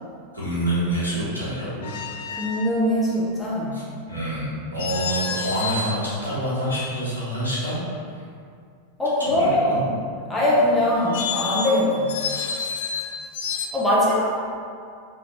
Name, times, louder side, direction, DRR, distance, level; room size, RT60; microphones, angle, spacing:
voice 1, 0.3-2.0 3.7-3.8 4.1-7.8 8.1-8.2 9.2-9.8, right 1 dB, 90° left, -10 dB, 1.2 m, -27 dB
sound 1, 1.8-2.8 4.8-6.0 6.6-7.3 10.9-13.7, left 5 dB, 55° left, 0.3 m, -30 dB
voice 2, 2.3-3.8 9.0-9.9 10.3-12.2 13.7-14.4, left 1 dB, 5° left, -8 dB, 1.0 m, -21 dB
3.0 x 2.9 x 4.0 m, 2.2 s
figure-of-eight pair, 90°, 0 cm